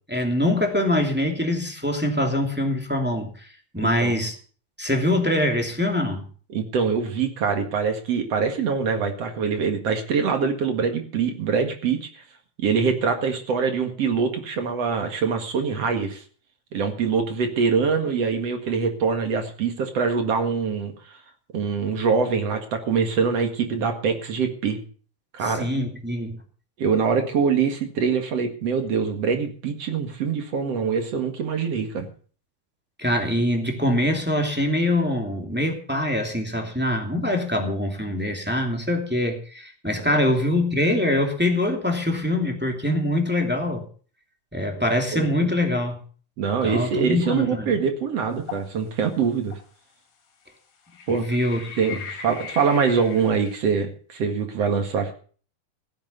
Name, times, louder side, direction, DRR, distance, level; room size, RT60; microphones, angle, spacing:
voice 1, 0.1-4.3 4.8-6.2 25.4-26.4 33.0-43.8 44.5-46.0 46.6-47.8 51.1-52.0, left 1 dB, 5° right, 2 dB, 2.2 m, -24 dB
voice 2, 3.8-4.1 6.5-12.2 12.6-16.2 16.7-21.2 21.5-24.8 25.3-25.7 26.8-32.1 40.0-40.2 44.8-44.9 45.1-45.5 46.4-49.5 51.1-51.3 51.8-55.1, right 5 dB, 55° right, 5 dB, 2.7 m, -24 dB
sound 1, 48.5-48.7 49.5-49.6 50.9-53.6, left 7 dB, 70° left, 3.9 m, -38 dB
16.5 x 8.7 x 6.7 m, 0.42 s
omnidirectional pair, 3.6 m